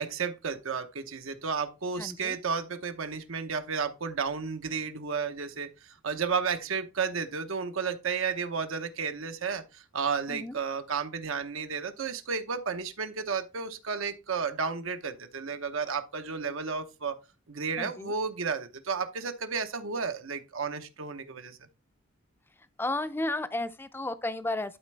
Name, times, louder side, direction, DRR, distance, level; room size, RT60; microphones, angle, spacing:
voice 1, 0.0-17.2 17.5-21.6, right 5 dB, 80° right, 0.9 m, -32 dB
voice 2, 2.0-2.4 10.3-10.6 17.8-18.1 22.8-24.8, left 2 dB, 10° left, 0.4 m, -33 dB
12.0 x 4.2 x 3.3 m
head